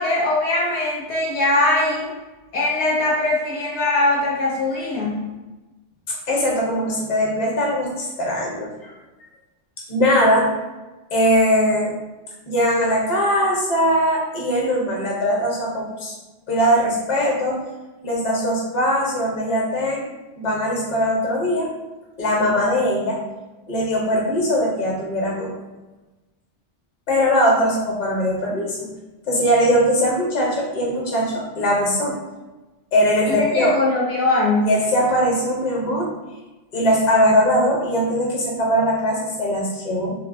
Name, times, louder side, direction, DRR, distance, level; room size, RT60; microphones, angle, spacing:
voice 1, 0.0-2.1 2.5-5.2 33.3-34.7, left 2 dB, 70° left, -4 dB, 0.9 m, -21 dB
voice 2, 6.1-8.9 9.9-10.5 11.1-11.9 12.5-16.2 16.5-17.6 18.0-20.1 20.4-21.7 22.2-23.2 23.7-25.5 27.1-28.9 29.3-32.2 32.9-33.7 34.6-36.1 36.7-40.2, equal, 40° left, -3 dB, 0.8 m, -20 dB
3.2 x 2.2 x 2.5 m, 1.1 s
omnidirectional pair, 1.2 m